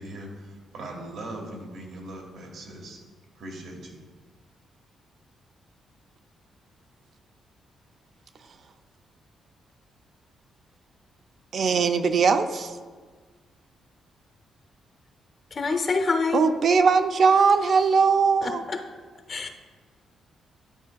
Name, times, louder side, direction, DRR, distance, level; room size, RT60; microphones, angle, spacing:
voice 1, 0.0-3.0 3.3-4.0, right 1 dB, 75° right, 1 dB, 1.3 m, -40 dB
voice 2, 11.5-12.8 16.3-18.6, right 5 dB, 50° right, 9 dB, 0.4 m, -20 dB
voice 3, 15.5-16.4 18.4-18.8 19.3-19.5, left 4 dB, 40° left, 6 dB, 0.6 m, -26 dB
10.5 x 4.9 x 2.3 m, 1.5 s
cardioid pair, 130°, 0 cm